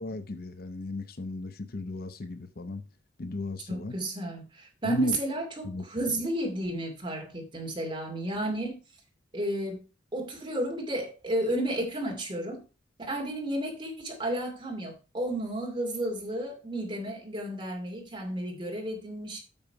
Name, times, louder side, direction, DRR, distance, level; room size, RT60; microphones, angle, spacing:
voice 1, 0.0-2.8 3.2-4.0 4.8-5.2 5.6-5.8, left 2 dB, 55° left, 0.7 m, -34 dB
voice 2, 3.7-8.8 9.3-9.8 10.1-12.6 13.0-19.4, right 1 dB, 25° right, 2.5 m, -32 dB
8.8 x 5.9 x 4.6 m
head